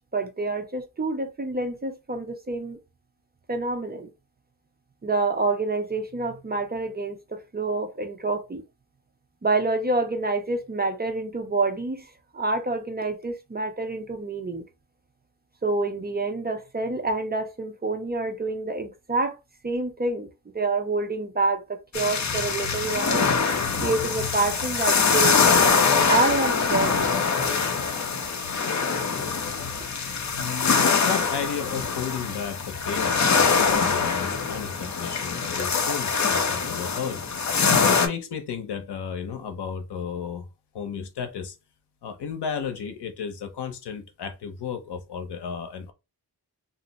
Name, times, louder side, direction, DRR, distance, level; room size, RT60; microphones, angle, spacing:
voice 1, 0.1-2.8 3.5-4.1 5.0-8.6 9.4-12.1 12.3-14.6 15.6-19.3 19.6-20.3 20.5-23.3 23.8-25.4 26.1-27.0, right 3 dB, 25° right, 0.4 m, -27 dB
sound 1, 21.9-38.1, left 5 dB, 45° left, 0.6 m, -23 dB
voice 2, 30.3-37.2 37.9-40.5 40.7-41.6 42.0-45.9, left 7 dB, 85° left, 0.7 m, -33 dB
2.5 x 2.0 x 3.9 m
wide cardioid pair, 160°, 39 cm